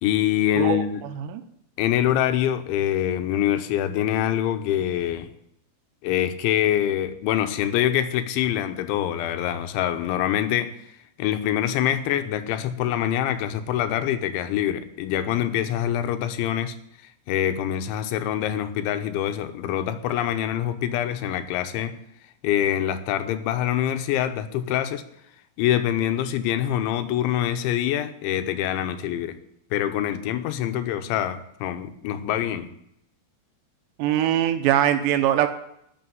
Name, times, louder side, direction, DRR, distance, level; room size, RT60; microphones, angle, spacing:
voice 1, 0.0-1.0 1.8-5.3 6.0-10.7 11.2-16.8 17.3-22.0 22.4-25.0 25.6-29.4 29.7-32.7, left 11 dB, 85° left, 9 dB, 3.2 m, -25 dB
voice 2, 0.5-0.8 1.2-1.4 34.0-35.5, right 11 dB, 80° right, 8 dB, 2.9 m, -22 dB
13.0 x 6.4 x 9.3 m, 0.75 s
omnidirectional pair, 5.3 m